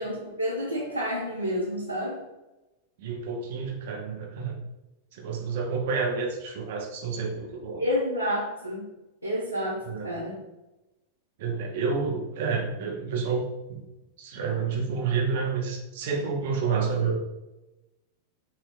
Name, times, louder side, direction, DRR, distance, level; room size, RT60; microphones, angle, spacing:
voice 1, 0.0-2.2 7.8-8.9 9.2-10.4, equal, 90° left, -7 dB, 0.7 m, -29 dB
voice 2, 3.0-4.6 5.1-7.8 9.8-10.1 11.4-13.8 14.2-17.2, right 5 dB, 55° right, 1 dB, 0.8 m, -29 dB
5.0 x 2.7 x 2.5 m, 1.0 s
figure-of-eight pair, 90°, 0 cm